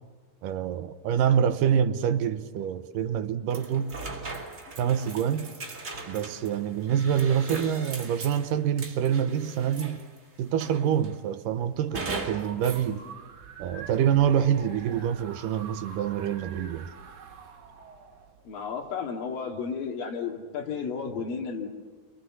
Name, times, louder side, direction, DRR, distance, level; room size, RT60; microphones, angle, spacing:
voice 1, 0.4-3.9 4.8-5.5 6.1-10.1 10.4-13.1 13.6-16.9, right 9 dB, 80° right, 2.6 m, -26 dB
sound 1, 3.5-10.2 10.6-11.2 11.9-12.9, right 3 dB, 25° right, 2.2 m, -39 dB
sound 2, 11.7-18.9, right 5 dB, 65° right, 3.1 m, -46 dB
voice 2, 18.5-21.7, left 5 dB, 85° left, 3.8 m, -33 dB
28.0 x 23.5 x 7.4 m
omnidirectional pair, 3.9 m